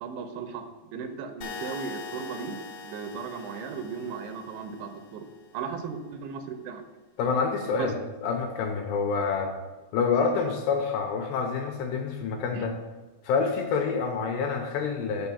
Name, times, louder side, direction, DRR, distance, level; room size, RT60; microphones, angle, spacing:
voice 1, 0.0-2.6 2.8-5.3 5.5-6.8 7.8-7.9 12.5-12.7, right 6 dB, 80° right, 6 dB, 3.0 m, -36 dB
sound 1, 1.4-5.4, left 5 dB, 60° left, 2.0 m, -42 dB
voice 2, 7.2-9.5 9.9-12.7 13.2-15.3, left 5 dB, 80° left, 2 dB, 2.6 m, -27 dB
6.9 x 5.9 x 6.9 m, 1.2 s
omnidirectional pair, 5.3 m